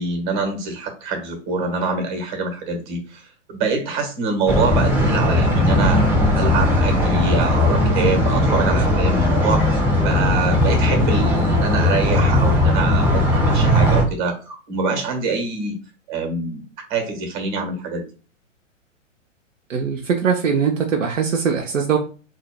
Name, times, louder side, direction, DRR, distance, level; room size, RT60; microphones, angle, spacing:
voice 1, 0.0-6.0 6.3-9.7 10.0-15.7 16.1-16.6 16.9-18.0, right 4 dB, 40° right, 5 dB, 1.4 m, -25 dB
sound 1, 4.5-14.0, left 1 dB, 5° right, 0.7 m, -18 dB
voice 2, 19.7-22.0, right 6 dB, 70° right, 3 dB, 0.7 m, -21 dB
4.0 x 2.7 x 2.2 m, 0.36 s
figure-of-eight pair, 115°, 39 cm